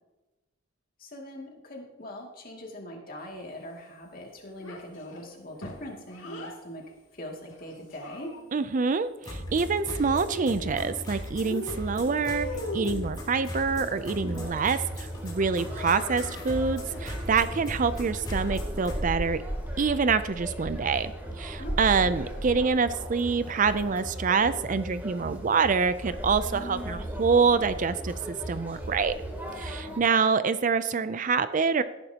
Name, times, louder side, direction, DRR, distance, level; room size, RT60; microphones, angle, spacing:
voice 1, 1.0-6.8 7.1-8.3 14.2-14.5 21.6-21.8 22.0-22.2 26.5-27.2 29.9-30.3, equal, 45° left, 0 dB, 2.5 m, -42 dB
Child speech kid speaking, 4.6-6.6 7.5-8.7 9.9-11.0 11.4-13.1 15.7-16.5, left 1 dB, 75° left, 2.9 m, -40 dB
voice 2, 8.5-12.5 12.7-19.4 19.8-29.1 29.5-31.8, right 5 dB, 40° right, 13 dB, 0.4 m, -26 dB
sound 1, 9.2-19.0, left 1 dB, 20° left, 3.3 m, -37 dB
Conversation, 13.7-30.0, right 1 dB, 10° right, 2.7 m, -37 dB
17.5 x 10.5 x 2.9 m, 1.1 s
head